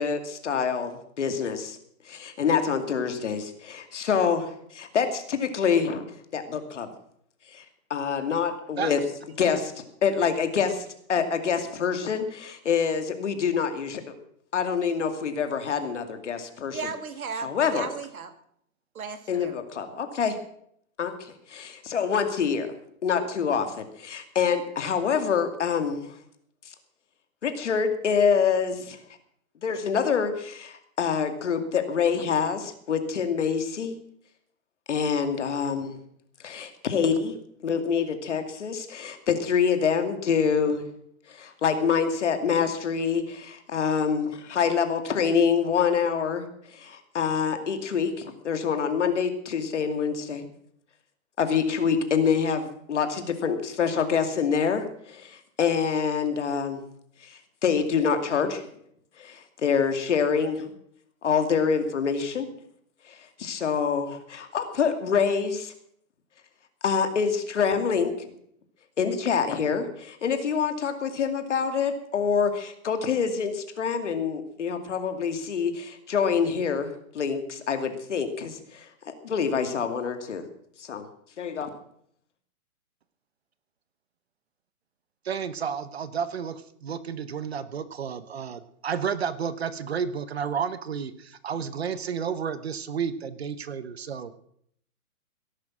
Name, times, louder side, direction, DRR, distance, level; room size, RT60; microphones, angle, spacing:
voice 1, 0.0-1.8 2.1-6.0 6.3-6.9 7.5-7.6 7.9-9.0 9.4-14.0 14.5-16.8 17.4-17.9 19.3-20.4 21.0-22.7 23.0-26.1 27.4-29.0 29.6-33.9 34.9-36.0 36.4-37.3 37.6-40.8 41.3-50.5 51.4-56.8 57.2-58.6 59.2-60.7 61.2-62.5 63.1-65.7 66.8-68.3 69.0-80.4 80.8-81.1 81.4-81.7, left 6 dB, 55° left, 7 dB, 2.5 m, -26 dB
voice 2, 16.7-18.3 18.9-19.6, right 5 dB, 85° right, 9 dB, 2.6 m, -35 dB
voice 3, 85.2-94.4, right 7 dB, 45° right, 14 dB, 1.1 m, -31 dB
17.5 x 11.5 x 6.2 m, 0.68 s
hypercardioid pair, 180°, 42 cm